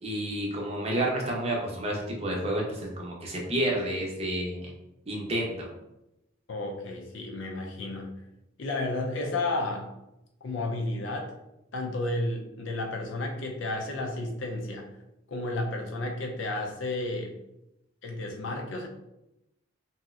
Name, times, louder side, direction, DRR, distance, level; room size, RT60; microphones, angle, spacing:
voice 1, 0.0-4.7 5.1-5.7, right 1 dB, 30° right, -2 dB, 0.6 m, -30 dB
voice 2, 6.5-8.1 8.6-9.9 10.4-11.3 11.7-14.9 15.3-17.4 18.0-18.9, left 2 dB, 70° left, 2 dB, 0.5 m, -32 dB
3.0 x 2.8 x 2.4 m, 0.90 s
head